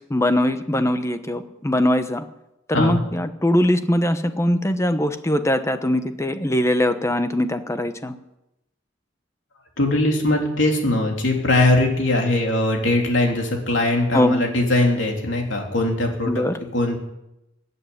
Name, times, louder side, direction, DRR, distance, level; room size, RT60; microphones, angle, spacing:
voice 1, 0.1-2.2 2.7-8.1 14.1-14.4 16.3-16.6, left 1 dB, 15° left, 9 dB, 1.0 m, -21 dB
voice 2, 9.8-16.3 16.7-17.0, left 2 dB, 65° left, 1 dB, 3.4 m, -20 dB
16.5 x 8.2 x 10.0 m, 0.89 s
head